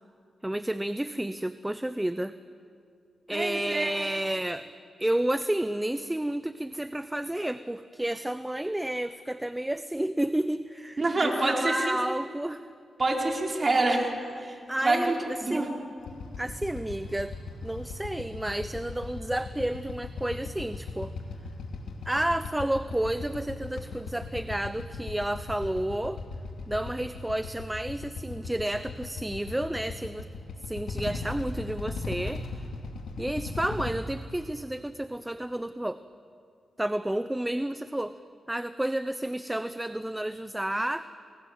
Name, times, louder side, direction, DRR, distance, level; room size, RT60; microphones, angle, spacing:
voice 1, 0.4-2.3 3.3-4.7 5.0-12.6 14.7-15.6 16.4-17.3 17.6-21.1 22.1-26.2 26.7-30.3 30.7-32.7 33.2-36.0 36.8-38.1 38.5-41.1, right 1 dB, 10° right, 12 dB, 0.8 m, -31 dB
voice 2, 3.3-3.9 11.0-12.0 13.0-14.1 14.4-15.2 15.4-15.7, right 2 dB, 40° right, 0 dB, 5.0 m, -26 dB
Motorcycle / Idling, 16.0-33.9, left 3 dB, 85° left, 2.8 m, -38 dB
29.5 x 22.0 x 7.7 m, 2.3 s
cardioid pair, 60°, 0 cm